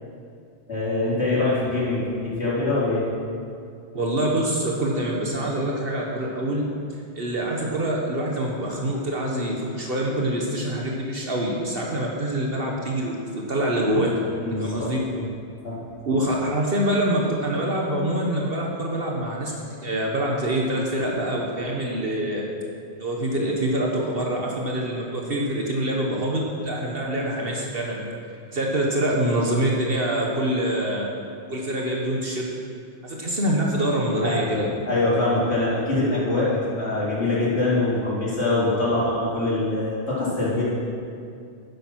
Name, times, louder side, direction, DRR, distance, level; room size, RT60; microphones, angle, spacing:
voice 1, 0.7-3.0 14.4-14.9 15.2-15.3 15.6-15.8 34.2-40.6, left 2 dB, 75° left, -7 dB, 3.7 m, -24 dB
voice 2, 3.9-6.6 7.1-14.2 14.6-15.0 16.0-19.5 19.8-22.5 23.0-28.0 28.5-31.1 31.5-32.5 33.0-34.7, right 1 dB, 60° right, -2 dB, 1.5 m, -25 dB
11.0 x 10.0 x 6.2 m, 2.4 s
omnidirectional pair, 1.1 m